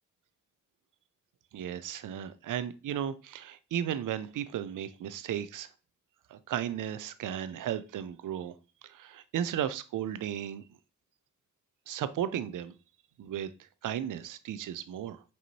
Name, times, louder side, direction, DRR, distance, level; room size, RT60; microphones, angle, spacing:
voice 1, 1.5-5.7 6.3-8.5 8.8-10.6 11.9-12.7 13.2-15.2, right 10 dB, 70° right, 0.5 m, -35 dB
5.3 x 2.8 x 2.7 m
cardioid pair, 50°, 33 cm